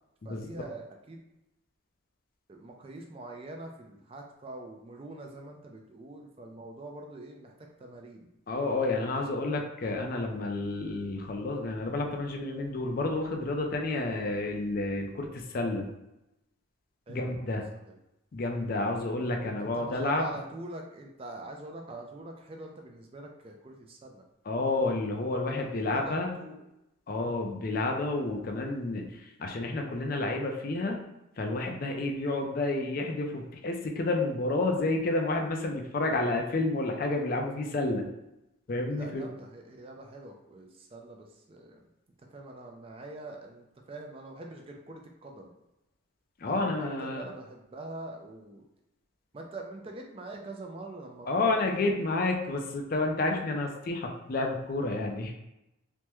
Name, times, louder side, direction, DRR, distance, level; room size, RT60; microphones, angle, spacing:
voice 1, 0.2-1.2 2.5-7.5 7.8-8.3 9.1-9.2 12.8-12.9 17.1-17.3 17.9-18.0 19.5-24.2 25.6-26.7 27.1-27.4 38.9-41.9 42.3-45.6 46.5-48.7 49.3-52.0, right 2 dB, 25° right, 2 dB, 0.3 m, -44 dB
voice 2, 8.5-15.9 17.1-17.6 18.3-20.3 24.5-26.3 27.1-31.0 31.4-38.1 38.7-39.3 46.4-47.3 51.3-55.3, left 2 dB, 45° left, 2 dB, 0.4 m, -30 dB
3.3 x 2.1 x 3.0 m, 0.90 s
head